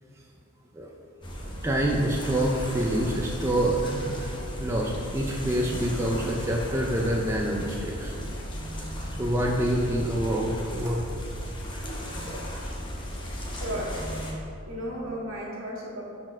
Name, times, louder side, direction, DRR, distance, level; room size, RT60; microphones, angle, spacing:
sound 1, 1.2-14.3, equal, 20° left, 0.8 m, -35 dB
voice 1, 1.6-4.3 4.6-8.1 9.2-11.0, right 1 dB, 10° right, -2 dB, 0.4 m, -26 dB
voice 2, 13.5-14.1 14.7-16.0, equal, 65° right, -5 dB, 1.7 m, -34 dB
6.4 x 4.2 x 6.0 m, 2.5 s
head